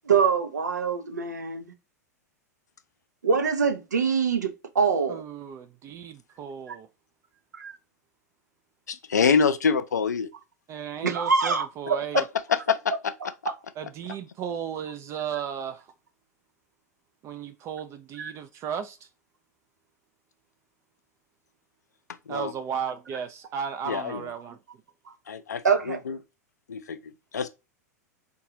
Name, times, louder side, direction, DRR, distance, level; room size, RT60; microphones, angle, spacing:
voice 1, 0.1-1.7 3.2-4.5 4.7-5.2 6.7-6.8 7.6-7.8 11.0-12.0 18.2-18.3 25.6-26.0, right 5 dB, 80° right, 0.5 m, -24 dB
voice 2, 5.1-6.9 10.7-12.2 13.8-15.9 17.2-19.0 22.3-24.6, right 7 dB, 30° right, 0.3 m, -35 dB
voice 3, 8.9-10.3 12.1-12.2 12.5-13.3 22.3-22.5 23.9-24.3 25.3-26.2 26.7-27.5, left 6 dB, 80° left, 0.4 m, -26 dB
3.8 x 2.2 x 2.7 m
figure-of-eight pair, 95°, 9 cm